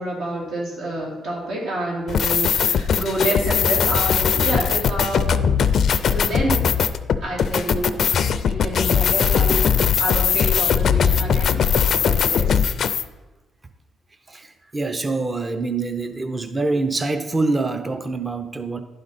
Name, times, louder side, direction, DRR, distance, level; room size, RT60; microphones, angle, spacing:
voice 1, 0.0-5.4 5.8-6.7 7.2-11.6 12.0-12.6, right 1 dB, 85° right, -4 dB, 2.4 m, -28 dB
sound 1, 2.1-13.0, left 7 dB, 60° left, 0.4 m, -20 dB
voice 2, 14.3-18.8, right 3 dB, 25° right, 9 dB, 0.5 m, -25 dB
11.0 x 5.1 x 4.1 m, 1.1 s
cardioid pair, 90°, 0 cm